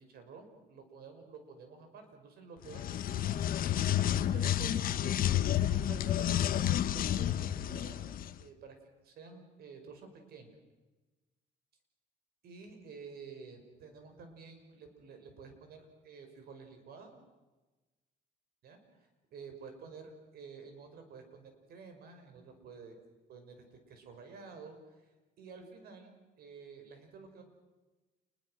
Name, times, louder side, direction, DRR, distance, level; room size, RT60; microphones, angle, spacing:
voice 1, 0.0-3.4 4.1-5.2 5.7-8.1 8.4-8.8 9.0-10.6 12.4-17.2 18.6-23.0 23.3-25.0 25.4-26.1 26.4-27.4, right 4 dB, 65° right, 6 dB, 5.8 m, -51 dB
sound 1, 2.6-8.3, left 11 dB, 60° left, 1.0 m, -30 dB
28.5 x 22.0 x 6.5 m, 1.2 s
cardioid pair, 110°, 17 cm